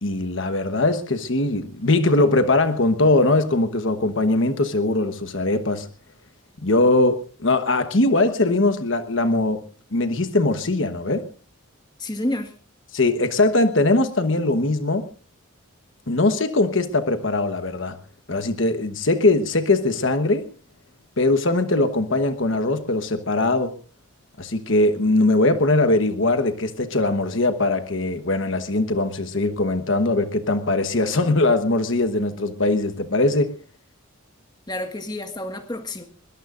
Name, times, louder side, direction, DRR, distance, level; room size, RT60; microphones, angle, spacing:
voice 1, 0.0-5.9 6.6-9.6 9.9-11.2 12.9-15.1 16.1-18.0 18.3-20.4 21.2-23.7 24.4-33.5, left 2 dB, 60° left, 8 dB, 1.2 m, -21 dB
voice 2, 12.0-12.5 34.7-36.1, left 1 dB, 20° left, 6 dB, 1.7 m, -29 dB
22.0 x 21.0 x 2.6 m, 0.38 s
head